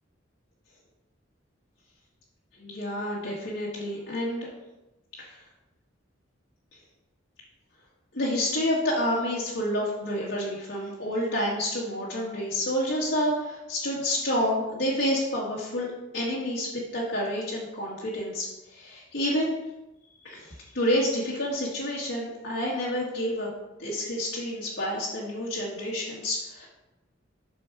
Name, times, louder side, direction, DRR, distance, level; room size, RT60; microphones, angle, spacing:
voice 1, 2.6-4.5 5.2-5.4 8.1-19.6 20.2-23.5 23.8-26.7, equal, 70° left, -7 dB, 2.0 m, -29 dB
7.4 x 6.2 x 4.8 m, 0.97 s
head